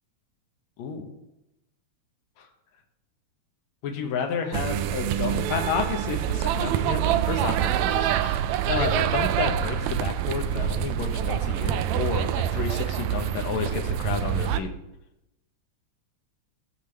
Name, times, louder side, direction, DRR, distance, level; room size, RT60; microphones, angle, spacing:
voice 1, 0.8-1.1 3.8-8.4 8.7-14.7, left 6 dB, 70° left, 5 dB, 2.2 m, -31 dB
sound 1, 4.5-14.6, right 10 dB, 80° right, 1.7 m, -26 dB
16.0 x 6.8 x 3.3 m, 0.89 s
omnidirectional pair, 3.4 m